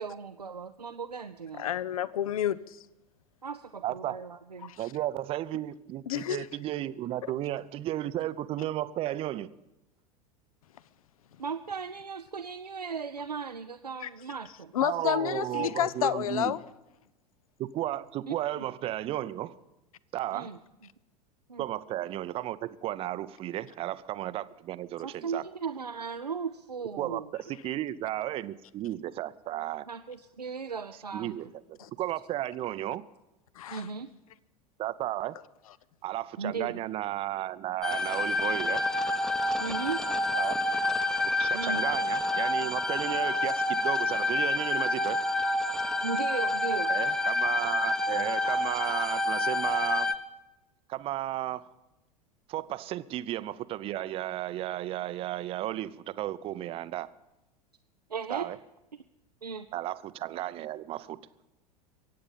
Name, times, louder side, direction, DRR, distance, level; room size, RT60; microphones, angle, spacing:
voice 1, 0.0-1.8 3.4-4.7 11.4-14.7 18.3-18.7 20.3-20.6 21.5-21.7 25.0-27.3 29.9-31.4 33.7-34.1 36.4-36.8 39.5-40.2 41.5-41.8 46.0-46.9 58.1-58.5 59.4-59.7, right 5 dB, 85° right, 0.5 m, -37 dB
voice 2, 1.6-2.8 4.7-4.8 6.1-6.5 14.0-14.1 14.7-16.6 31.8-31.9 33.6-33.8, left 11 dB, 65° left, 0.6 m, -29 dB
voice 3, 3.8-4.2 4.8-9.5 14.8-16.5 17.6-19.5 20.1-20.5 21.6-25.4 27.0-29.9 31.1-33.0 34.8-35.4 36.0-38.9 40.3-40.7 41.4-45.2 46.9-50.1 50.9-51.7 52.5-57.1 58.3-58.6 59.7-61.2, right 14 dB, 30° right, 0.5 m, -34 dB
sound 1, 37.8-50.1, left 2 dB, 5° left, 0.8 m, -28 dB
23.0 x 8.7 x 5.5 m
figure-of-eight pair, 85°, 20 cm